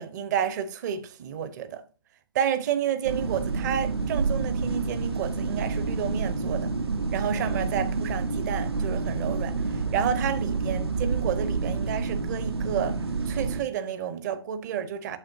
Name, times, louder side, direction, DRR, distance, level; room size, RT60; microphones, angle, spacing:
voice 1, 0.0-1.8 2.3-6.7 7.1-13.0 13.3-15.2, right 9 dB, 45° right, 1.1 m, -30 dB
sound 1, 3.0-13.6, right 4 dB, 80° right, 1.3 m, -28 dB
8.7 x 6.9 x 2.8 m
figure-of-eight pair, 120°, 13 cm